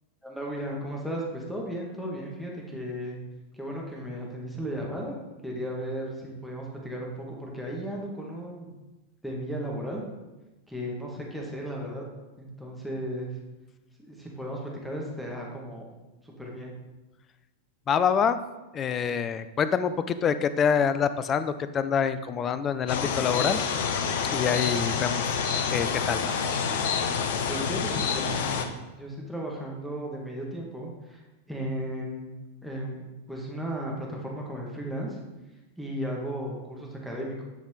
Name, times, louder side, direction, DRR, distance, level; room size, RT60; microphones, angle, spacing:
voice 1, 0.2-3.2 3.5-8.7 9.2-10.0 10.7-12.0 12.4-13.4 14.0-15.9 16.2-16.8 27.5-28.6 28.9-31.2 31.5-32.3 32.6-33.0 33.3-35.2 35.8-37.4, equal, ahead, -2 dB, 1.9 m, -35 dB
voice 2, 17.9-18.4 18.7-23.6 24.2-25.4 25.7-26.3, left 7 dB, 25° left, 12 dB, 0.5 m, -26 dB
sound 1, 22.9-28.7, left 6 dB, 55° left, 0.8 m, -28 dB
10.0 x 6.1 x 4.0 m, 1.1 s
figure-of-eight pair, 90°, 0 cm